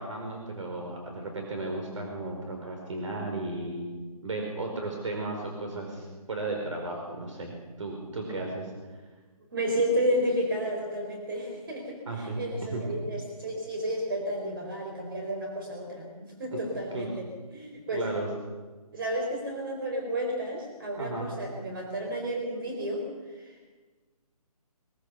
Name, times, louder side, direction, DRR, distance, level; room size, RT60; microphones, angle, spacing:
voice 1, 0.0-3.9 4.2-7.5 7.8-9.0 12.1-12.4 12.7-12.8 16.5-16.6 16.9-17.1 17.9-18.3 21.0-21.3, right 2 dB, 55° right, 2 dB, 5.0 m, -35 dB
voice 2, 9.5-17.3 17.5-18.0 18.9-23.7, equal, 35° right, 1 dB, 4.2 m, -32 dB
22.0 x 21.5 x 6.8 m, 1.3 s
hypercardioid pair, 175°, 20 cm